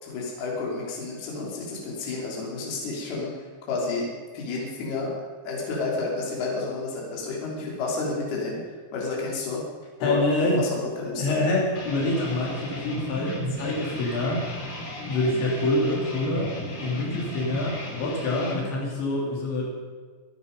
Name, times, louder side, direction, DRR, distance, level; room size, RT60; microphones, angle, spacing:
voice 1, 0.0-4.1 4.3-5.1 5.4-8.6 8.9-9.6 10.0-11.4, left 3 dB, 60° left, -3 dB, 4.9 m, -30 dB
voice 2, 10.0-10.6 11.1-14.5 15.1-16.5 16.8-19.7, left 2 dB, 75° left, -3 dB, 5.3 m, -26 dB
sound 1, 11.7-18.6, equal, 30° left, 3.0 m, -35 dB
25.5 x 9.8 x 5.3 m, 1.5 s
omnidirectional pair, 5.3 m